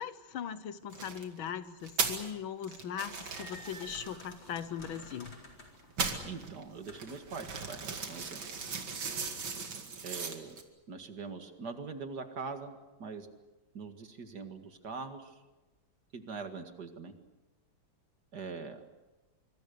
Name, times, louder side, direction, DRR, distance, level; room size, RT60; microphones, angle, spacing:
voice 1, 0.0-5.3, left 8 dB, 85° left, 13 dB, 1.9 m, -39 dB
sound 1, 0.9-1.2 1.8-2.3 2.6-5.4 5.8-10.6, right 5 dB, 75° right, 3.0 m, -38 dB
sound 2, 2.9-7.9, left 1 dB, 65° left, 5.0 m, -53 dB
voice 2, 6.2-7.8 8.1-8.4 10.0-10.6 10.9-13.3 13.7-15.3 16.1-17.1 18.3-18.8, right 4 dB, 55° right, 7 dB, 2.4 m, -42 dB
25.0 x 25.0 x 6.8 m, 1.1 s
omnidirectional pair, 2.2 m